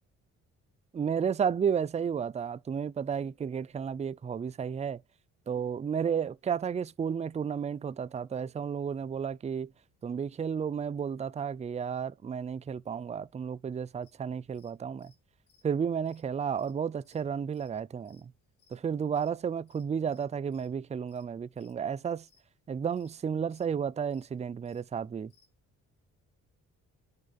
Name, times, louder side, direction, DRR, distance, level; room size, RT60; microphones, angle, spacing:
voice 1, 0.9-5.0 5.5-9.7 10.0-15.1 15.6-18.3 18.7-22.3 22.7-25.3, right 7 dB, 25° right, 0.4 m, -32 dB
sound 1, 14.0-25.5, left 5 dB, 80° left, 4.5 m, -68 dB
9.7 x 4.6 x 4.1 m
cardioid pair, 90°, 30 cm